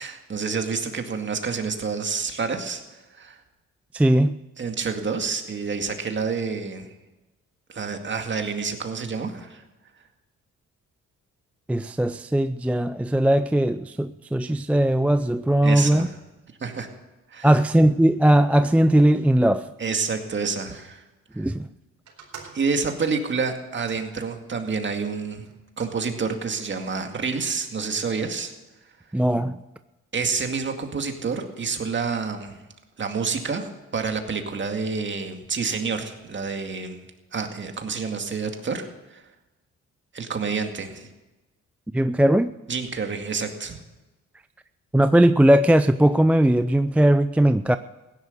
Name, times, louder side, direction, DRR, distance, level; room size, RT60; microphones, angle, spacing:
voice 1, 0.0-2.8 3.1-3.4 4.6-6.9 7.7-9.6 15.6-16.1 16.6-16.9 17.3-17.6 19.8-21.0 21.4-21.5 22.5-25.5 25.8-28.5 30.1-32.6 33.0-37.0 37.3-39.2 40.1-41.1 42.7-43.8, right 5 dB, 40° right, 5 dB, 2.1 m, -28 dB
voice 2, 3.9-4.4 11.7-16.1 17.4-19.7 21.4-21.7 29.1-29.6 41.9-42.5 44.9-47.8, right 1 dB, 5° right, 11 dB, 0.4 m, -19 dB
sound 1, 22.1-24.8 25.4-26.0 26.8-27.4, right 6 dB, 65° right, 4.3 m, -48 dB
16.0 x 11.0 x 6.7 m, 1.1 s
cardioid pair, 90°, 30 cm